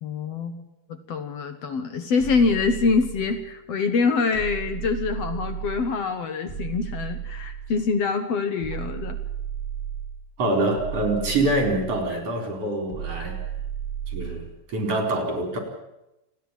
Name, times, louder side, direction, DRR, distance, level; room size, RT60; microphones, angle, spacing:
voice 1, 0.0-9.2, left 4 dB, 60° left, 9 dB, 2.2 m, -25 dB
sound 1, 2.2-3.5 4.3-6.0 6.5-7.9 8.6-10.2 10.7-12.1 12.9-14.5, right 9 dB, 15° left, 4.3 m, -34 dB
voice 2, 10.4-13.4 14.1-15.6, right 2 dB, 50° right, 4 dB, 5.4 m, -25 dB
29.0 x 10.0 x 9.0 m, 0.90 s
omnidirectional pair, 3.5 m